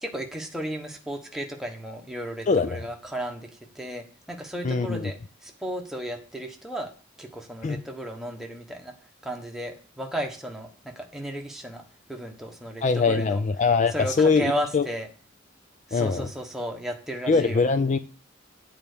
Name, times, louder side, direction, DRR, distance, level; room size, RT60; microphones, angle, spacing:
voice 1, 0.0-3.5 3.7-6.9 7.2-8.9 9.2-11.8 12.1-13.4 13.9-15.1 15.9-17.7, equal, ahead, 2 dB, 1.3 m, -34 dB
voice 2, 2.5-2.8 4.6-5.1 7.6-7.8 12.8-14.9 15.9-16.3 17.3-18.0, left 4 dB, 35° left, 11 dB, 0.4 m, -22 dB
8.9 x 4.5 x 6.8 m, 0.38 s
head